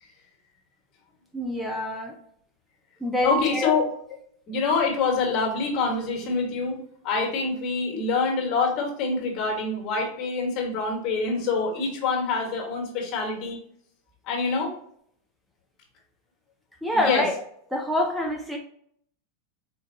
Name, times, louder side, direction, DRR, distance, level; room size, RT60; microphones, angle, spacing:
voice 1, 1.3-2.1 3.0-3.7 16.8-17.3 17.7-18.6, left 1 dB, ahead, 1 dB, 0.5 m, -26 dB
voice 2, 3.2-3.9 4.5-6.8 7.0-13.6 14.3-14.7 16.9-17.2, left 4 dB, 45° left, 1 dB, 1.3 m, -25 dB
4.5 x 2.5 x 2.7 m, 0.66 s
hypercardioid pair, 105°, 0 cm